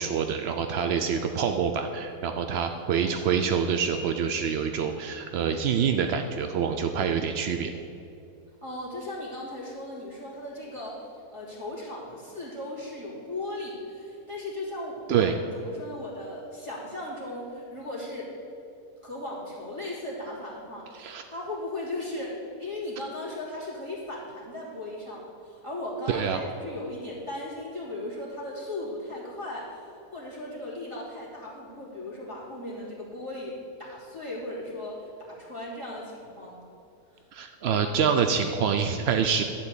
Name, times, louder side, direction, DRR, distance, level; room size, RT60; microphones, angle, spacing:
voice 1, 0.0-7.7 15.1-15.3 20.9-21.2 26.1-26.4 37.3-39.4, right 7 dB, 70° right, 6 dB, 0.6 m, -26 dB
voice 2, 8.6-18.3 19.0-36.7 37.1-37.2, left 1 dB, 20° right, -6 dB, 2.6 m, -37 dB
11.5 x 4.4 x 8.1 m, 2.6 s
omnidirectional pair, 1.6 m